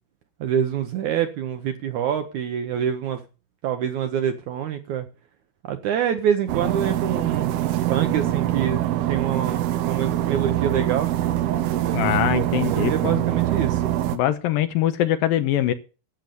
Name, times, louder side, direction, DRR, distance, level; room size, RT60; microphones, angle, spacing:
voice 1, 0.4-3.2 3.6-5.1 5.7-8.8 9.1-11.1 12.7-13.8, right 9 dB, 70° right, 7 dB, 1.9 m, -26 dB
sound 1, 6.5-14.2, right 13 dB, 90° right, 2.9 m, -24 dB
voice 2, 11.9-13.2 14.1-15.7, left 12 dB, 75° left, 11 dB, 2.5 m, -23 dB
12.0 x 7.9 x 6.9 m, 0.33 s
omnidirectional pair, 4.4 m